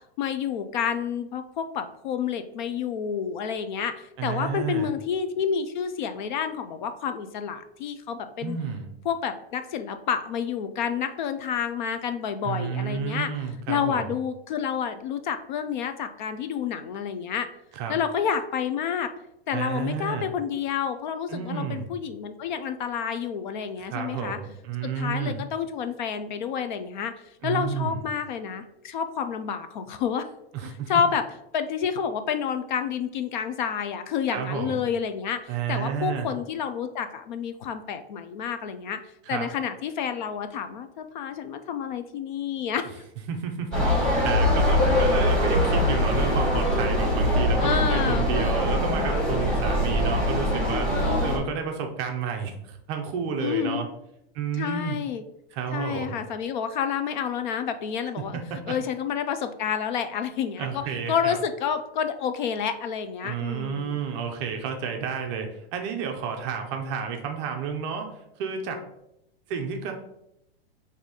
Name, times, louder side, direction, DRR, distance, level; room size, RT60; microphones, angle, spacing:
voice 1, 0.2-8.6 9.0-13.3 13.7-17.5 17.9-19.1 19.5-24.4 25.0-27.1 27.4-30.3 30.9-31.2 31.5-39.0 39.3-42.9 47.6-48.3 50.9-51.5 53.4-53.9 54.6-55.2 55.7-58.4 58.7-60.8 61.1-64.0, left 7 dB, 50° left, 9 dB, 0.4 m, -29 dB
voice 2, 4.2-4.9 8.4-8.9 12.4-14.1 17.7-18.0 19.5-20.3 21.3-21.9 23.8-25.4 27.4-28.0 30.5-30.9 34.3-34.8 35.5-36.3 39.3-39.5 43.3-53.9 54.3-55.0 55.5-56.2 58.2-58.7 60.6-61.4 63.2-68.1 68.4-68.8 69.5-69.9, right 6 dB, 30° right, 4 dB, 0.5 m, -31 dB
sound 1, 43.7-51.4, left 1 dB, 5° left, 1.1 m, -23 dB
4.0 x 2.7 x 4.7 m, 0.82 s
supercardioid pair, 155°, 31 cm